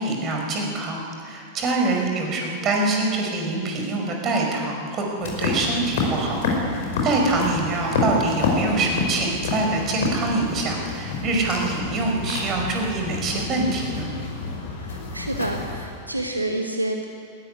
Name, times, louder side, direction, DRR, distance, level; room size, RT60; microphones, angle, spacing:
voice 1, 0.0-6.4 7.0-14.1, right 2 dB, 30° right, 1 dB, 5.3 m, -25 dB
sound 1, 5.2-15.9, left 3 dB, 55° left, 5.4 m, -28 dB
voice 2, 14.8-17.0, right 1 dB, 85° right, 3 dB, 1.4 m, -28 dB
20.0 x 14.0 x 9.9 m, 2.3 s
figure-of-eight pair, 90°, 0 cm